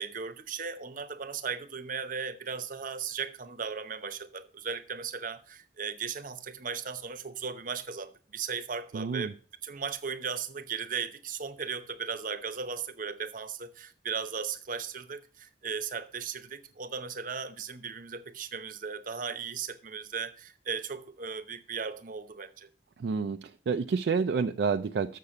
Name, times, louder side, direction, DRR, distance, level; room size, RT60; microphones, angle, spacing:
voice 1, 0.0-9.3 9.6-22.7, right 6 dB, 50° right, 0.8 m, -37 dB
voice 2, 8.9-9.3 23.0-25.2, right 5 dB, 65° right, 0.3 m, -29 dB
6.6 x 6.6 x 7.0 m
head